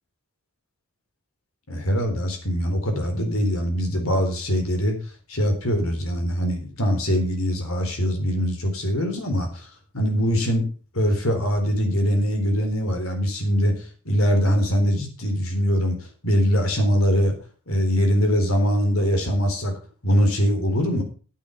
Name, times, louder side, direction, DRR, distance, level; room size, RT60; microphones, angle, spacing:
voice 1, 1.7-4.9 5.3-9.7 9.9-10.7 10.9-13.7 14.1-16.0 16.2-17.4 17.7-19.7 20.0-21.0, equal, 65° left, 4 dB, 4.0 m, -22 dB
11.5 x 9.0 x 5.8 m, 0.39 s
head